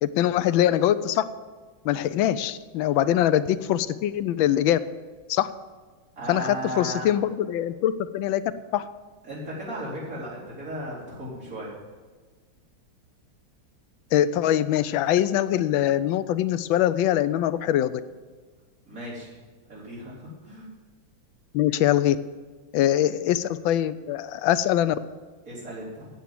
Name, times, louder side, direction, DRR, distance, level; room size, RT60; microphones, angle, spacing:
voice 1, 0.0-1.2 1.8-4.8 5.3-5.5 6.3-8.4 8.7-8.9 14.1-18.0 21.5-22.2 22.7-24.9, left 12 dB, 85° left, 14 dB, 1.3 m, -23 dB
voice 2, 6.1-7.1 9.2-11.7 18.9-19.3 19.7-20.7 23.0-23.1 25.4-26.1, right 1 dB, 45° right, -7 dB, 4.5 m, -35 dB
9.2 x 8.4 x 7.7 m, 1.4 s
omnidirectional pair, 2.1 m